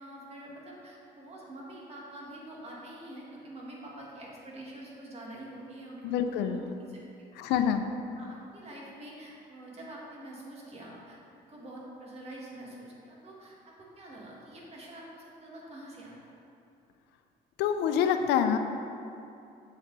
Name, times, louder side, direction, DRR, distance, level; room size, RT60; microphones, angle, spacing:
voice 1, 0.0-7.0 7.4-7.6 8.2-11.2 11.5-16.3, right 1 dB, 40° right, -4 dB, 2.1 m, -46 dB
voice 2, 6.0-6.6 7.4-7.8 17.6-18.6, left 8 dB, 85° left, 8 dB, 0.6 m, -26 dB
7.8 x 7.3 x 4.1 m, 2.6 s
cardioid pair, 110°, 17 cm